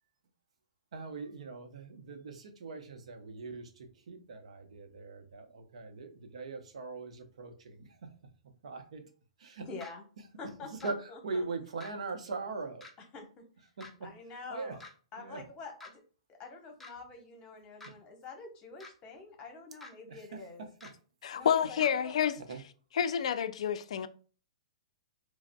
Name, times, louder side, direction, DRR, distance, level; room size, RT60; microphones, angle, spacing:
voice 1, 0.9-7.9 8.6-9.0 9.4-9.7 10.7-12.9 13.8-13.9 14.5-14.7 15.2-15.4 17.8-17.9 20.1-20.4 20.8-20.9 22.5-22.6, right 3 dB, 70° right, 0.7 m, -41 dB
voice 2, 9.7-10.0 10.4-11.4 13.1-13.4 14.0-14.8 15.1-16.0 16.3-20.6 21.3-22.1, left 4 dB, 30° left, 0.9 m, -46 dB
sound 1, 9.8-9.9 10.8-10.9 11.8-11.9 12.8-12.9 13.8-13.9 14.8-14.9 15.8-15.9 16.8-16.9 17.8-17.9 18.8-18.9 19.8-19.9 20.8-20.9 21.8-21.9, left 2 dB, 5° left, 0.5 m, -48 dB
voice 3, 21.2-22.3 22.9-24.1, left 8 dB, 65° left, 0.3 m, -29 dB
4.7 x 2.0 x 2.2 m
hypercardioid pair, 125°, 4 cm